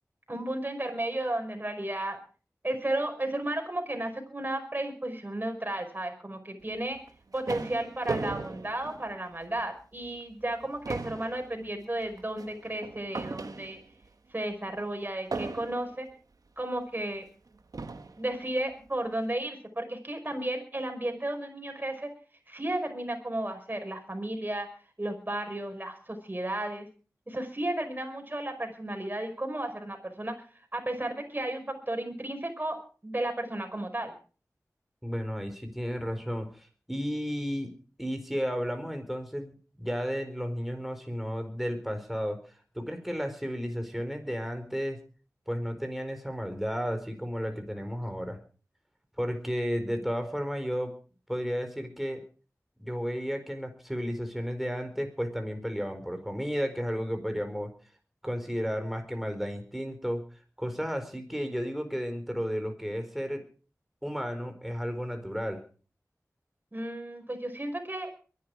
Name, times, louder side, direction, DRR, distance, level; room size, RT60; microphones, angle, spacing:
voice 1, 0.3-2.2 2.6-7.0 7.3-13.8 14.3-16.1 16.6-17.2 18.1-22.1 22.5-24.7 25.0-26.9 27.3-30.3 30.7-32.8 33.0-34.1 66.7-68.1, right 1 dB, 30° right, 4 dB, 5.3 m, -33 dB
sound 1, 6.9-9.6 10.0-10.2 10.5-14.0 15.3-16.1 16.9-17.0 17.7-18.3, right 3 dB, 85° right, 1.4 m, -38 dB
voice 2, 35.0-37.7 38.0-39.5 39.8-42.4 42.7-45.0 45.5-48.4 49.2-50.9 51.3-52.2 52.8-57.7 58.2-60.2 60.6-63.4 64.0-65.6, equal, 5° right, 6 dB, 4.4 m, -33 dB
23.0 x 11.0 x 4.8 m, 0.39 s
wide cardioid pair, 65°, 6 cm